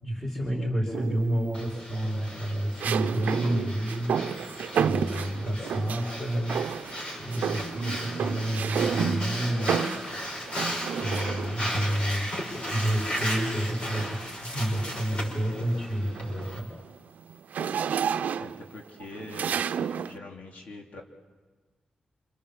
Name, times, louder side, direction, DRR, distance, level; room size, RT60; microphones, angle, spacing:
voice 1, 0.0-4.1 4.7-6.5 7.2-10.0 10.9-16.7, right 1 dB, 15° left, -2 dB, 5.4 m, -30 dB
sound 1, 0.9-1.5 2.8-6.1 6.5-7.0 7.3-11.7 12.9-14.3 14.8-15.0 15.4-20.2, right 7 dB, 80° right, 0.8 m, -31 dB
Breathing, 1.5-16.6, equal, 45° left, 5.8 m, -36 dB
voice 2, 18.4-19.6 20.0-21.0, left 2 dB, 60° left, 1 dB, 3.1 m, -43 dB
28.0 x 27.0 x 7.4 m, 1.3 s
wide cardioid pair, 175°, 3 cm